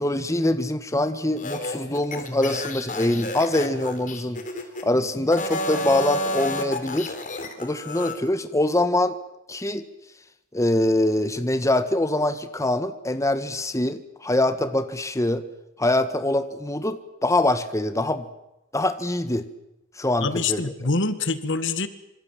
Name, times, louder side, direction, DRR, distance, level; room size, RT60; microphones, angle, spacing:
voice 1, 0.0-4.4 4.8-7.1 7.6-9.1 9.5-9.8 10.5-15.4 15.8-18.3 18.7-19.5 20.0-20.6, left 1 dB, 15° left, 10 dB, 1.5 m, -24 dB
sound 1, 1.4-4.9 5.3-8.2, left 1 dB, 40° left, 3.8 m, -31 dB
voice 2, 20.2-21.9, left 3 dB, 60° left, 12 dB, 1.9 m, -25 dB
26.5 x 26.0 x 7.5 m, 0.92 s
head